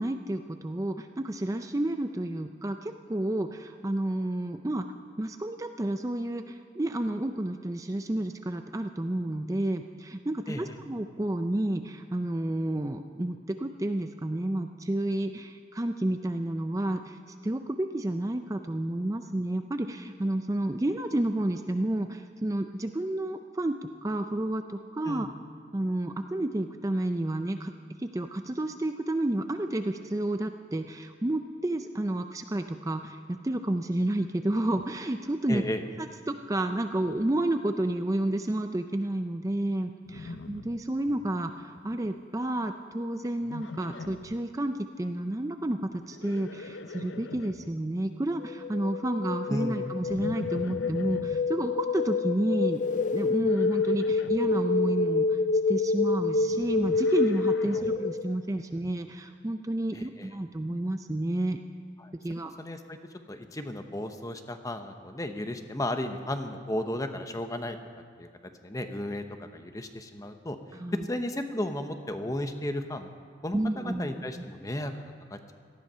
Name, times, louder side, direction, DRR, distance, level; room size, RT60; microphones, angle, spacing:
voice 1, 0.0-4.9 5.2-25.3 25.7-27.7 28.0-35.6 36.0-52.8 53.1-55.4 55.7-61.6 62.1-62.5 70.7-71.1 73.5-74.4, right 1 dB, 20° right, 7 dB, 0.5 m, -30 dB
voice 2, 35.5-35.8 49.5-49.9 57.7-58.0 59.9-60.3 62.0-62.1 62.6-63.0 63.3-67.8 68.2-68.3 68.6-70.6 70.9-73.1 73.4-74.9 75.3-75.4, left 1 dB, 20° left, 7 dB, 0.9 m, -34 dB
Livestock farm animals working animals, 40.0-41.3 41.6-42.1 43.4-44.4 46.0-47.7 50.0-51.4 53.4-54.5 56.3-58.0, left 3 dB, 90° left, 0.6 m, -42 dB
sound 1, 48.4-58.3, left 4 dB, 45° left, 0.4 m, -28 dB
18.0 x 13.5 x 5.6 m, 2.2 s
head